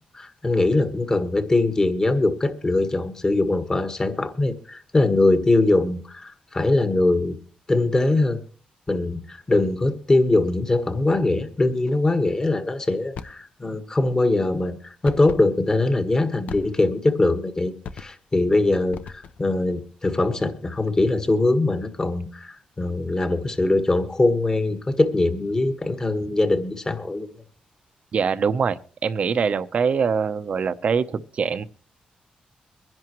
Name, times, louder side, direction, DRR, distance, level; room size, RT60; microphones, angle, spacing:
voice 1, 0.1-7.4 7.7-8.4 8.9-17.7 18.0-27.3, left 2 dB, 25° left, 1.6 m, -22 dB
sound 1, 13.1-13.5 15.1-15.5 16.5-17.0 17.8-18.3 18.9-19.5, left 6 dB, 75° left, 0.8 m, -38 dB
voice 2, 28.1-31.6, right 6 dB, 55° right, 0.8 m, -23 dB
23.5 x 10.5 x 3.1 m
cardioid pair, 95°, 3 cm